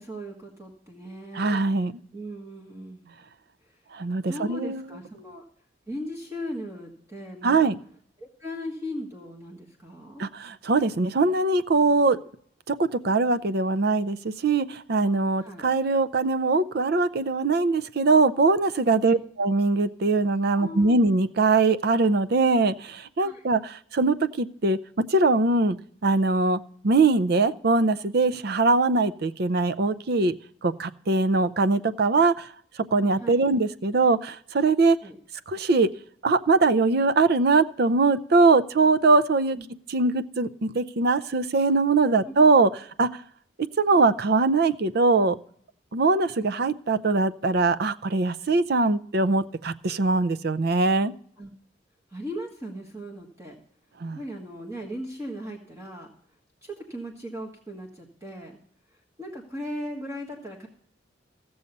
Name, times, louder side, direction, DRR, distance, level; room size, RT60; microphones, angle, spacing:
voice 1, 0.0-1.6 2.1-3.1 4.3-5.4 5.9-7.7 8.2-10.2 15.4-15.6 19.0-19.2 20.5-21.0 23.2-23.5 33.2-33.4 35.0-35.2 39.5-39.6 42.2-42.3 51.4-51.5 52.1-53.6 54.1-56.1 56.6-58.6 59.2-60.7, equal, 15° right, 0 dB, 1.5 m, -38 dB
voice 2, 1.3-1.9 3.9-4.9 7.4-7.8 10.2-12.2 12.7-24.8 25.1-25.8 26.0-30.3 30.6-32.5 32.9-35.0 35.5-35.9 36.2-39.6 39.9-42.7 43.0-43.1 43.8-45.4 45.9-51.1 54.0-54.2, right 3 dB, 60° right, 12 dB, 0.6 m, -22 dB
15.5 x 7.0 x 5.3 m, 0.62 s
head